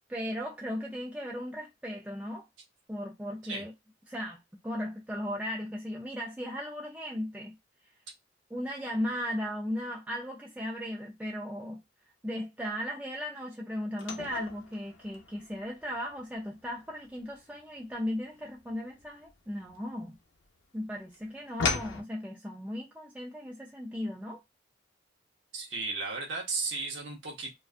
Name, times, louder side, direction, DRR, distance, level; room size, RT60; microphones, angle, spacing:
voice 1, 0.1-2.5 2.9-3.7 4.1-7.5 8.5-11.8 12.2-20.2 20.7-24.4, equal, 5° right, 0.4 m, -36 dB
sound 1, 14.0-20.4 20.8-22.0, left 4 dB, 85° left, 0.7 m, -37 dB
voice 2, 25.5-27.5, right 4 dB, 80° right, 0.8 m, -34 dB
2.5 x 2.3 x 2.4 m
head